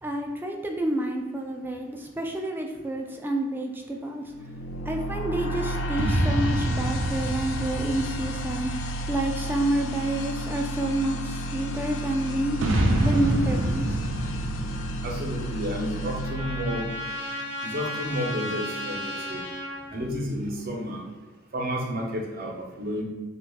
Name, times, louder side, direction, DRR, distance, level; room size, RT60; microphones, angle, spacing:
voice 1, 0.0-4.2 4.9-8.7 9.1-12.6 13.0-14.0, right 1 dB, 10° right, 2 dB, 0.3 m, -29 dB
sound 1, 4.3-17.4, right 1 dB, 75° left, 0.3 m, -33 dB
sound 2, 5.9-9.6 12.6-16.3, right 1 dB, 85° right, 0.5 m, -27 dB
voice 2, 15.0-16.9 17.6-19.4 19.9-21.0 21.5-23.0, equal, 45° right, -1 dB, 0.6 m, -31 dB
Trumpet, 15.4-19.9, left 1 dB, 90° left, 0.9 m, -35 dB
3.1 x 2.3 x 3.4 m, 1.3 s
head